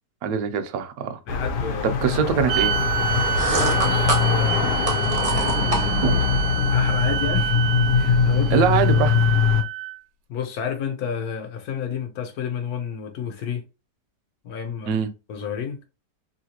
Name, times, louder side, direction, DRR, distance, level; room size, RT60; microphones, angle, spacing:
voice 1, 0.2-1.2 1.8-2.7 8.5-9.1 14.9-15.1, right 7 dB, 70° right, 1.0 m, -22 dB
sound 1, 1.3-9.6, left 5 dB, 90° left, 1.3 m, -22 dB
voice 2, 1.3-2.4 3.8-6.0 6.7-7.6 8.0-8.7 10.3-13.6 14.4-15.0 15.3-15.8, left 7 dB, 70° left, 1.2 m, -31 dB
sound 2, 2.5-10.0, right 9 dB, 90° right, 1.2 m, -28 dB
sound 3, 3.0-6.3, right 2 dB, 35° right, 0.5 m, -27 dB
3.1 x 2.8 x 2.8 m
omnidirectional pair, 1.8 m